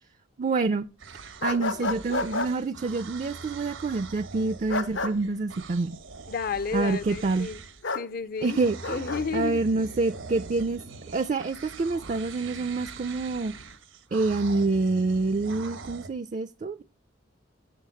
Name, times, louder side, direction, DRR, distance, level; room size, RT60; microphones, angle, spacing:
voice 1, 0.4-0.9 1.2-6.0 6.7-7.5 8.4-10.8 11.1-13.5 14.1-16.8, right 3 dB, 40° right, 0.4 m, -27 dB
sound 1, 1.0-7.9 8.4-16.1, right 4 dB, 90° right, 1.1 m, -43 dB
sound 2, 1.4-2.5 4.7-5.1 7.8-8.1 8.8-9.2, left 3 dB, 75° left, 0.9 m, -30 dB
voice 2, 6.3-7.6 7.9-8.6 8.9-9.6, left 5 dB, 50° left, 0.5 m, -31 dB
7.6 x 6.6 x 7.6 m
head